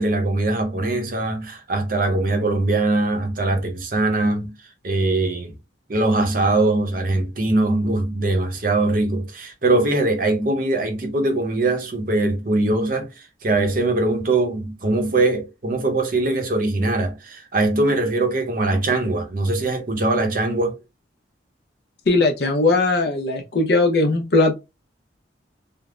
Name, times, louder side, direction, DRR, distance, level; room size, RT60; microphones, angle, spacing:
voice 1, 0.0-4.5 4.8-5.5 5.9-13.1 13.4-20.8, right 2 dB, 45° right, 0.7 m, -21 dB
voice 2, 22.1-24.5, left 2 dB, 55° left, 0.6 m, -19 dB
3.4 x 2.0 x 2.4 m
head